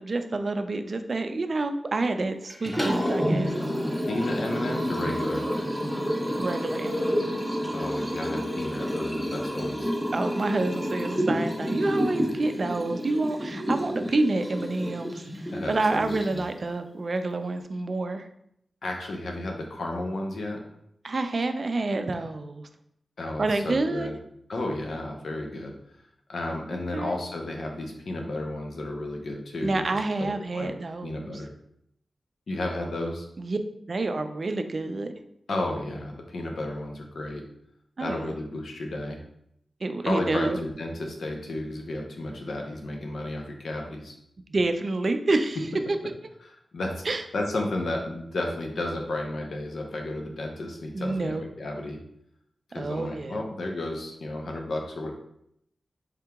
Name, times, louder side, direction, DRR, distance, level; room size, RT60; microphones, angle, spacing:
voice 1, 0.0-3.5 6.4-7.4 10.1-18.3 21.0-22.7 23.4-24.1 26.9-27.1 29.6-31.4 33.4-33.6 33.9-35.1 38.0-38.4 39.8-40.6 44.5-45.6 47.0-47.2 50.9-51.4 52.7-53.4, right 2 dB, 50° right, 8 dB, 0.3 m, -28 dB
Liquid, 2.5-16.6, equal, ahead, 1.0 m, -29 dB
voice 2, 4.0-5.4 7.7-9.9 15.5-16.4 18.8-20.6 23.2-24.2 24.5-25.7 26.3-30.7 31.0-31.5 32.5-33.3 35.5-37.5 38.0-39.2 40.0-44.1 46.7-47.0 47.3-52.0 52.7-55.1, left 1 dB, 75° left, 2 dB, 0.7 m, -32 dB
3.5 x 2.8 x 3.5 m, 0.74 s
wide cardioid pair, 80°, 0 cm